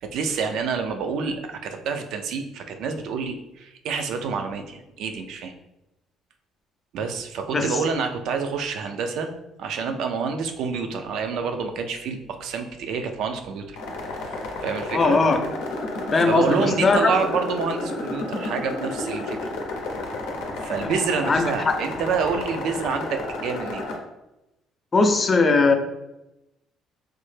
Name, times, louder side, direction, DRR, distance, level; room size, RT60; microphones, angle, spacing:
voice 1, 0.0-5.5 6.9-9.3 9.6-13.8 14.1-15.2 16.1-19.5 20.6-23.9, right 5 dB, 75° right, 5 dB, 0.3 m, -28 dB
sound 1, 13.8-24.0, left 2 dB, 90° left, 0.6 m, -31 dB
voice 2, 14.9-15.4 16.1-17.1 20.8-20.9 21.2-21.8 24.9-25.8, left 3 dB, 35° left, 6 dB, 0.4 m, -19 dB
3.1 x 2.0 x 3.1 m, 0.93 s
cardioid pair, 95°, 0 cm